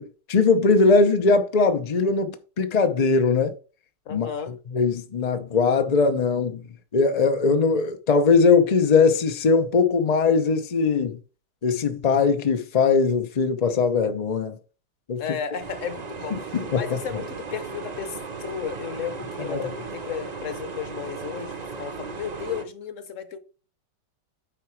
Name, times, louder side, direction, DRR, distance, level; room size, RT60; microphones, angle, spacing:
voice 1, 0.0-3.5 4.1-4.3 4.7-6.6 6.9-11.2 11.6-14.6 15.1-15.2 16.5-17.2 19.5-19.7, left 4 dB, 80° left, 0.3 m, -20 dB
voice 2, 4.1-4.6 15.2-16.3 16.7-23.4, left 7 dB, 50° left, 1.1 m, -34 dB
sound 1, 15.6-22.6, right 4 dB, 40° right, 0.6 m, -36 dB
9.1 x 4.8 x 4.5 m
omnidirectional pair, 1.9 m